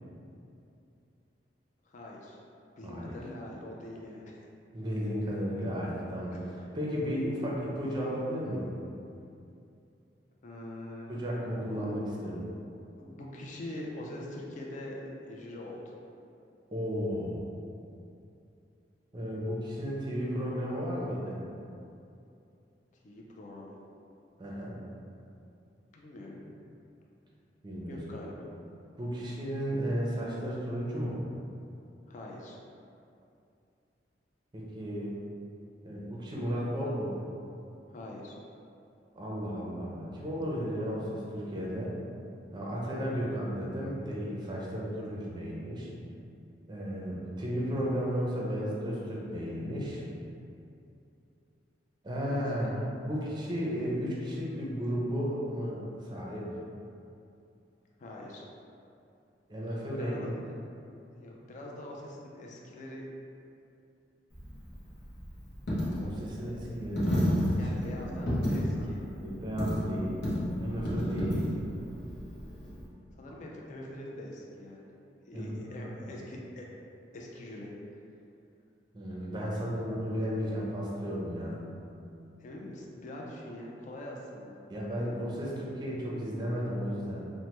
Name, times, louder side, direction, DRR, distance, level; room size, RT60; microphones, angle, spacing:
voice 1, 1.8-2.4 2.8-4.5 6.3-6.5 10.4-11.1 11.7-12.0 13.0-16.0 23.0-23.8 25.9-26.6 27.9-28.5 32.1-32.6 37.9-38.4 52.2-52.4 58.0-58.5 59.9-60.3 61.2-63.1 67.6-69.0 73.1-74.9 75.2-76.7 77.1-77.7 82.4-84.6, left 1 dB, 45° left, -2 dB, 0.4 m, -43 dB
voice 2, 2.8-3.2 4.7-6.4 6.7-8.7 11.1-12.5 16.7-17.4 19.1-21.4 24.4-24.8 27.6-28.0 29.0-31.2 34.5-35.2 35.8-37.2 39.1-41.9 42.5-45.9 46.7-50.0 52.0-56.5 59.5-60.4 65.9-67.1 67.6-67.8 68.5-70.3 70.6-71.5 75.3-76.2 78.9-81.6 84.7-87.3, equal, 25° right, -4 dB, 0.5 m, -34 dB
Coin (dropping), 64.3-72.9, equal, 65° left, 0.7 m, -32 dB
3.2 x 2.1 x 2.9 m, 2.6 s
head